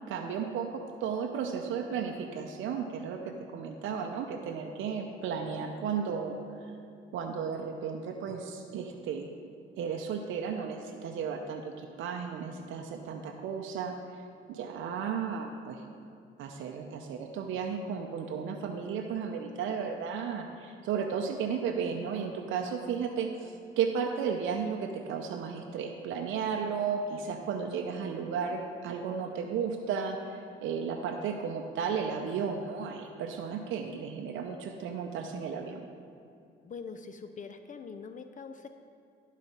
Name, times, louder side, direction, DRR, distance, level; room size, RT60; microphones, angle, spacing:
voice 1, 0.1-6.4 7.1-9.3 9.8-13.9 14.5-15.8 16.4-35.9, right 6 dB, 80° right, 3 dB, 0.6 m, -34 dB
voice 2, 36.6-38.7, left 5 dB, 40° left, 8 dB, 0.4 m, -43 dB
11.0 x 4.1 x 5.4 m, 2.5 s
cardioid pair, 90°, 20 cm